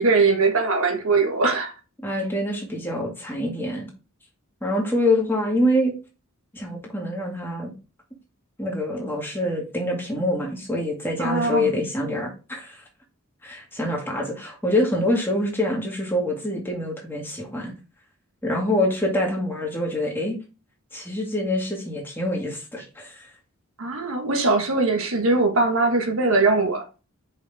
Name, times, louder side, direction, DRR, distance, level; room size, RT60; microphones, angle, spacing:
voice 1, 0.0-1.7 11.2-11.8 23.8-27.0, right 3 dB, 75° right, 1.5 m, -21 dB
voice 2, 2.0-3.9 4.6-5.9 6.5-7.7 8.6-12.8 13.4-17.7 18.4-20.4 20.9-23.3, left 1 dB, 10° left, 2.0 m, -25 dB
6.1 x 5.6 x 3.5 m
head